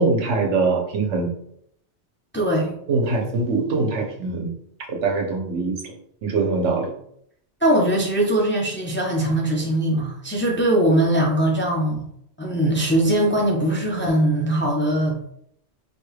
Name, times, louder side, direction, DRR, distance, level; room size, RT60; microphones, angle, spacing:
voice 1, 0.0-1.3 2.9-4.5 4.9-5.9 6.2-6.9, right 3 dB, 90° right, 1 dB, 1.1 m, -22 dB
voice 2, 2.3-2.7 7.6-12.1 12.4-15.2, right 1 dB, 15° left, -1 dB, 0.4 m, -21 dB
5.0 x 2.3 x 3.2 m, 0.70 s
omnidirectional pair, 1.2 m